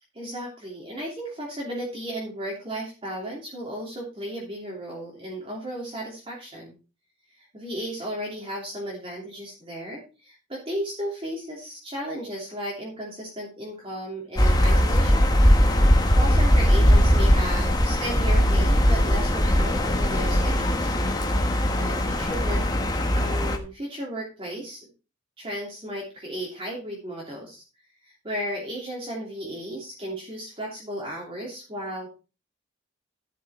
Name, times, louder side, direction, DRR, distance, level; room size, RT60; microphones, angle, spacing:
voice 1, 0.1-6.7 7.5-15.4 16.1-21.0 21.7-22.6 23.1-24.8 25.4-27.6 28.2-32.1, equal, 30° right, -3 dB, 3.0 m, -34 dB
sound 1, 14.4-23.6, equal, 20° left, 1.3 m, -20 dB
11.5 x 6.5 x 4.3 m, 0.31 s
head